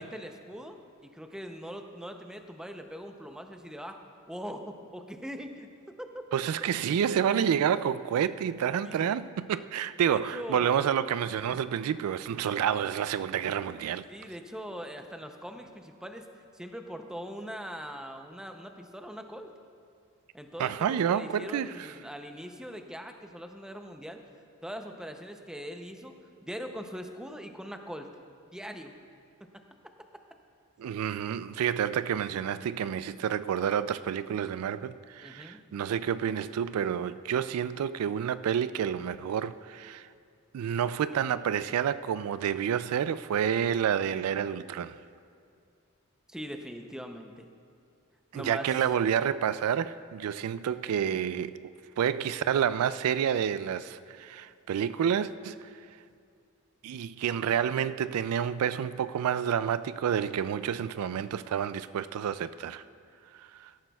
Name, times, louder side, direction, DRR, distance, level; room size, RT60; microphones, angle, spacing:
voice 1, 0.0-4.0 4.3-5.7 6.0-6.1 8.8-9.1 10.1-10.7 14.1-16.3 16.5-19.5 20.3-24.2 24.6-26.1 26.4-28.1 28.5-28.9 35.2-35.6 46.3-47.5 48.3-48.7, equal, 5° right, 0.6 m, -41 dB
voice 2, 6.3-14.1 20.6-21.9 30.8-40.1 40.5-45.0 48.3-51.6 52.0-55.7 56.8-62.8 63.4-63.7, right 8 dB, 80° right, 0.3 m, -29 dB
17.5 x 13.0 x 2.3 m
head